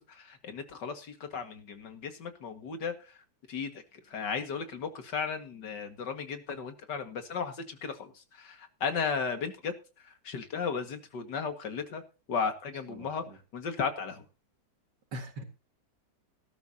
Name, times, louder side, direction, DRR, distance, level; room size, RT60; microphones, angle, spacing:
voice 1, 0.1-2.9 3.5-3.7 4.1-8.1 8.4-9.8 10.2-12.0 12.3-13.2 13.5-14.2, left 5 dB, 85° left, 7 dB, 2.4 m, -35 dB
voice 2, 12.9-13.4 15.1-15.4, right 1 dB, 80° right, 5 dB, 2.5 m, -42 dB
18.5 x 12.5 x 2.8 m, 0.32 s
omnidirectional pair, 1.8 m